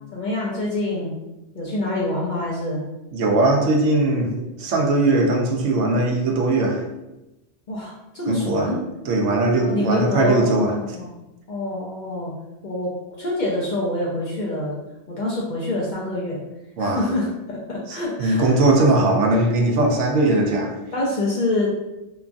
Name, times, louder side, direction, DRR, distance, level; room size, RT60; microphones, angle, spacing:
voice 1, 0.1-1.1 1.5-2.8 7.7-8.8 9.6-11.2 11.5-12.3 12.6-14.7 15.1-16.4 16.8-18.6 20.9-21.7, left 2 dB, 55° left, -5 dB, 0.5 m, -26 dB
voice 2, 3.1-4.3 4.6-6.8 8.3-8.7 9.1-10.7 16.8-17.0 17.9-20.8, right 2 dB, 85° right, 1 dB, 0.9 m, -19 dB
2.9 x 2.3 x 2.5 m, 0.96 s
omnidirectional pair, 1.2 m